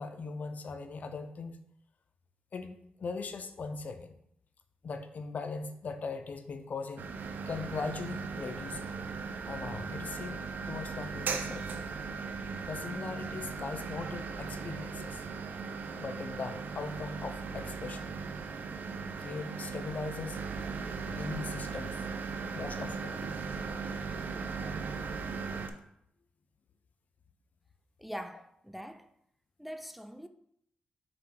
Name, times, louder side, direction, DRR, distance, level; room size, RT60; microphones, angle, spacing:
voice 1, 0.0-1.6 2.5-4.2 4.8-7.1 7.5-8.9 9.4-11.9 12.7-15.2 16.0-18.1 19.2-20.4 21.1-22.0 22.5-23.3, left 4 dB, 55° left, 0.6 m, -40 dB
sound 1, 7.0-25.7, right 5 dB, 70° right, 0.6 m, -38 dB
voice 2, 28.0-29.1 29.6-30.3, equal, 5° right, 0.4 m, -43 dB
5.9 x 4.7 x 3.8 m
cardioid pair, 75°, 3 cm